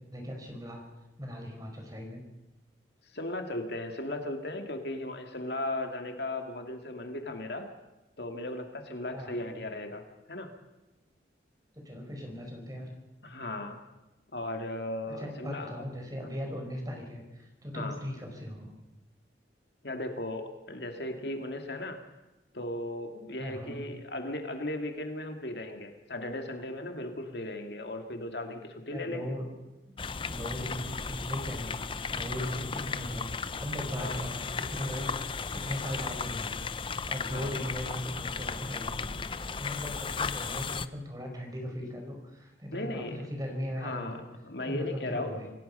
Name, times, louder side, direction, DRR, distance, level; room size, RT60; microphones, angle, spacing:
voice 1, 0.1-0.8 1.2-2.2 9.1-9.5 11.7-12.9 15.0-18.7 23.4-23.8 28.9-29.5 29.8-30.0 30.2-36.6 37.1-44.2 44.6-45.5, equal, 20° right, 2 dB, 5.1 m, -38 dB
voice 2, 3.1-7.7 8.2-10.5 13.2-13.8 14.3-15.7 17.7-18.0 19.8-22.0 22.5-29.4 32.4-32.6 34.0-34.2 37.3-37.5 42.7-43.3 43.8-45.5, left 1 dB, 65° left, 5 dB, 2.4 m, -36 dB
sound 1, 30.0-40.9, left 5 dB, 30° left, 0.6 m, -35 dB
27.0 x 17.5 x 5.6 m, 1.0 s
head